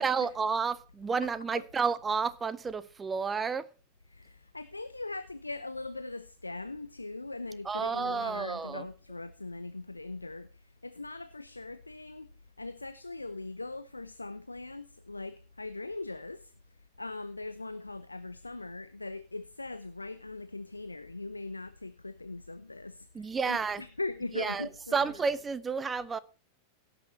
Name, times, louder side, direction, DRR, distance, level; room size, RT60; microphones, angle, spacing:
voice 1, 0.0-3.6 7.7-8.8 23.1-23.8 24.3-26.2, right 5 dB, 15° right, 0.5 m, -31 dB
voice 2, 1.2-1.6 4.1-12.3 12.6-16.5 17.0-25.2, left 2 dB, 80° left, 0.5 m, -40 dB
17.0 x 6.2 x 4.2 m
figure-of-eight pair, 90°, 0 cm